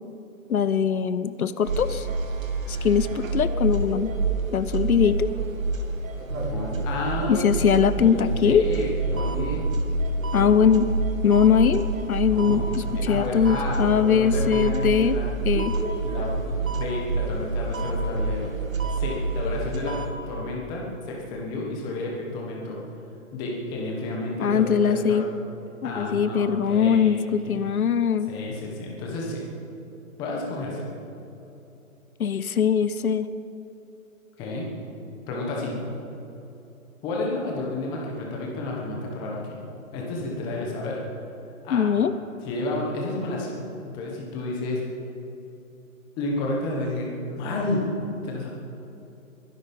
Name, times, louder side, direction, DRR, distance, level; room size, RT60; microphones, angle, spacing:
voice 1, 0.5-2.1 2.7-4.1 4.5-5.3 7.3-8.6 10.3-10.9 11.2-15.2 15.5-15.7 24.4-25.3 25.8-28.3 32.2-33.3 41.7-42.1, left 7 dB, 80° left, 13 dB, 0.9 m, -21 dB
sound 1, 1.6-20.1, right 3 dB, 65° right, 2.2 m, -28 dB
voice 2, 6.3-7.5 8.0-9.6 12.3-15.3 16.0-20.0 20.3-22.8 23.3-25.2 25.8-27.6 28.3-29.4 30.2-30.9 34.4-34.7 35.3-35.8 37.0-39.6 39.9-41.0 41.6-41.8 42.4-43.5 43.8-44.8 46.2-47.8 48.2-48.5, left 2 dB, 10° left, -2 dB, 1.4 m, -31 dB
22.5 x 10.5 x 5.5 m, 3.0 s
hypercardioid pair, 170°, 42 cm